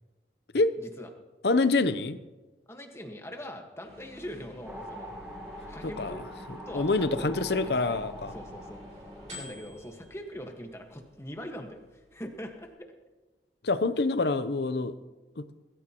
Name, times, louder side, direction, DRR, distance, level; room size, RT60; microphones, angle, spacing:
voice 1, 0.8-1.1 2.7-5.2 5.7-6.2 6.7-7.6 7.9-8.0 8.3-8.8 9.3-12.7, equal, 15° left, 3 dB, 1.5 m, -42 dB
voice 2, 1.4-2.2 5.8-6.2 6.5-8.3 13.6-15.0 15.4-15.5, left 3 dB, 70° left, 13 dB, 0.7 m, -26 dB
sound 1, 3.8-12.7, left 1 dB, 40° right, 4.7 m, -51 dB
sound 2, 4.6-11.1, equal, 5° right, 1.6 m, -44 dB
21.5 x 14.0 x 3.0 m, 1.2 s
head